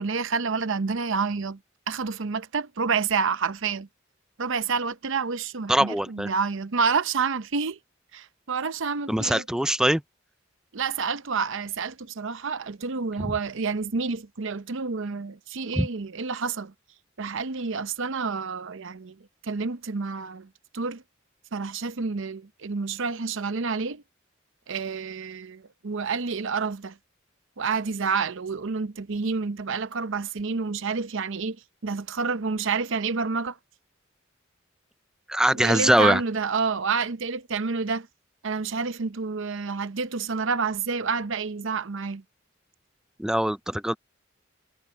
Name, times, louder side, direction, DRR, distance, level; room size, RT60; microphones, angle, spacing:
voice 1, 0.0-1.6 1.9-3.9 4.4-7.8 8.1-9.4 10.7-16.7 17.2-19.2 19.4-20.5 20.7-21.0 21.5-24.0 24.7-27.0 27.6-31.6 31.8-33.6 35.5-38.1 38.4-42.2, right 5 dB, 65° right, 0.7 m, -29 dB
voice 2, 5.7-6.3 9.1-10.0 13.2-13.3 15.7-15.9 35.3-36.2 43.2-44.0, right 1 dB, 5° right, 0.4 m, -22 dB
head